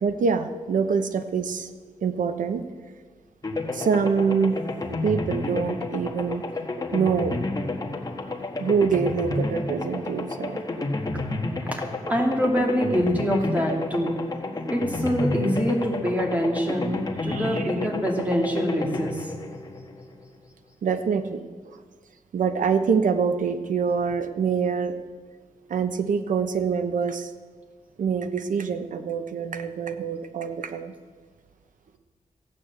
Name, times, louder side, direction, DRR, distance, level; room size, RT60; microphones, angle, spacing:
voice 1, 0.0-1.7 2.0-2.6 3.7-4.6 5.0-6.4 6.9-7.4 8.6-10.6 17.2-17.6 20.8-21.8 22.3-24.9 25.7-27.3 28.0-30.9, right 6 dB, 80° right, 9 dB, 1.0 m, -25 dB
sound 1, 3.4-20.4, left 2 dB, 30° left, 1.5 m, -31 dB
voice 2, 11.7-14.1 14.7-19.3, equal, 10° right, 1 dB, 2.4 m, -25 dB
15.0 x 8.6 x 8.0 m, 1.5 s
wide cardioid pair, 125°, 13 cm